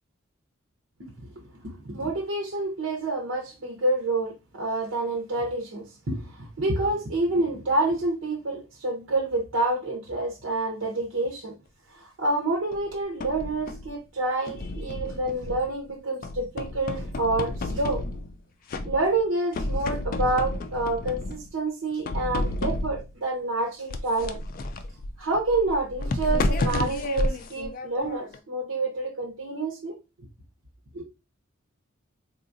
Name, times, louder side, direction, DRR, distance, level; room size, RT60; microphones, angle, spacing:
voice 1, 1.6-11.5 11.9-18.1 18.8-24.4 25.2-29.9 30.9-31.0, right 2 dB, 85° right, 0.7 m, -28 dB
sound 1, 12.7-13.9 14.5-15.8 16.2-18.4 18.7-19.3 19.5-21.5 22.0-23.1 23.9-28.4, left 2 dB, 45° left, 0.3 m, -31 dB
3.7 x 2.3 x 2.5 m
head